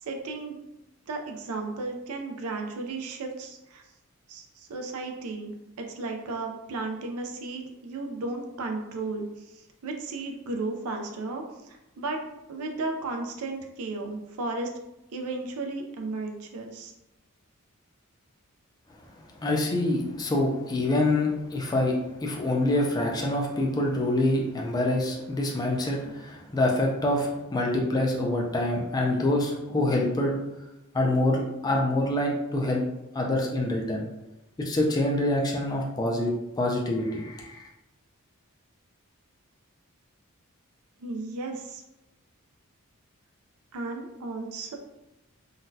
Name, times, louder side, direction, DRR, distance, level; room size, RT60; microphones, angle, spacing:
voice 1, 0.0-0.6 1.1-3.8 4.3-5.5 5.8-12.2 12.5-14.7 15.1-16.9 41.0-41.8 43.7-44.8, right 3 dB, 80° right, 3 dB, 0.4 m, -34 dB
voice 2, 19.2-30.3 30.9-32.8 33.1-34.1 34.6-37.6, left 1 dB, 20° left, -1 dB, 0.4 m, -26 dB
3.9 x 2.2 x 2.6 m, 0.94 s
head